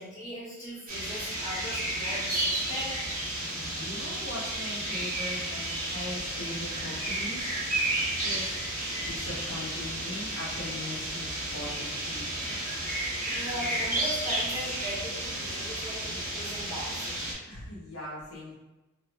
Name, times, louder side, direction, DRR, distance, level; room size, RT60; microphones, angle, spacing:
voice 1, 0.0-2.9 13.2-17.2, equal, 15° left, -10 dB, 1.2 m, -39 dB
sound 1, 0.9-17.3, right 1 dB, 35° right, 0.8 m, -32 dB
voice 2, 3.4-7.7 8.2-8.7 9.0-12.5 17.5-18.5, left 1 dB, 80° left, -6 dB, 1.0 m, -40 dB
2.8 x 2.3 x 3.2 m, 1.1 s
head